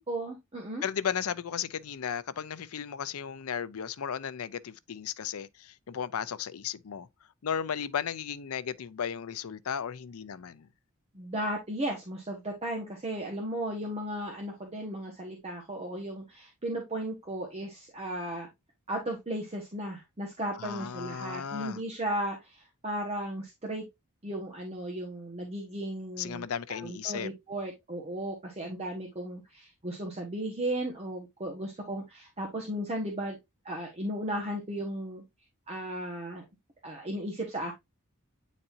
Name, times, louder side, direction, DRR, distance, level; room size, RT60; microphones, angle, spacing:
voice 1, 0.0-0.8 11.1-18.5 18.9-23.9 24.2-33.4 33.6-35.2 35.7-36.4 36.8-37.7, right 1 dB, 30° right, 1.2 m, -35 dB
voice 2, 0.8-7.1 7.4-10.7 20.5-21.8 26.2-27.3, left 8 dB, 80° left, 0.5 m, -35 dB
8.8 x 4.2 x 2.5 m
head